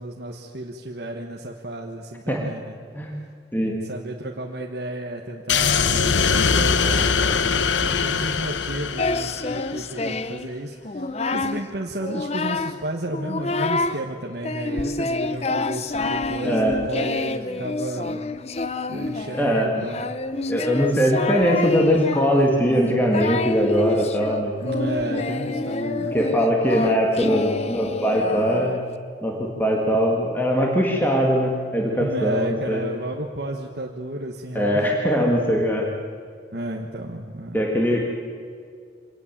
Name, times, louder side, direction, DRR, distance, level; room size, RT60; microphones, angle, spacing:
voice 1, 0.0-2.8 3.6-18.2 18.9-20.0 24.6-26.2 32.0-35.3 36.5-37.6, right 1 dB, 60° right, 0 dB, 1.4 m, -32 dB
sound 1, 5.5-9.9, left 5 dB, 85° left, 0.9 m, -22 dB
Singing, 9.0-10.5 10.8-11.6 12.0-12.8 13.1-14.0 14.4-28.9, left 2 dB, 35° left, 0.7 m, -28 dB
voice 2, 19.3-19.7 20.5-24.6 26.1-28.7 29.2-32.8 34.6-35.9 37.5-38.0, equal, 10° left, 0 dB, 1.9 m, -21 dB
25.0 x 18.5 x 7.5 m, 2.2 s
head